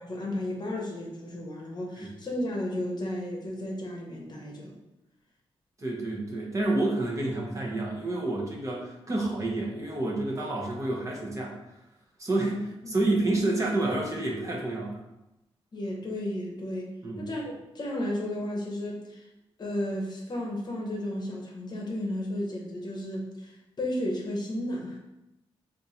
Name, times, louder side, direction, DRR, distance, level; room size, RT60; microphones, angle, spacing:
voice 1, 0.0-4.8 12.4-13.1 15.7-19.3 19.6-25.0, left 1 dB, 45° left, -1 dB, 0.8 m, -33 dB
voice 2, 5.8-11.5 12.2-15.0 17.0-17.3, right 2 dB, 30° right, -2 dB, 0.7 m, -29 dB
3.6 x 2.5 x 2.8 m, 0.91 s
cardioid pair, 90°, 10 cm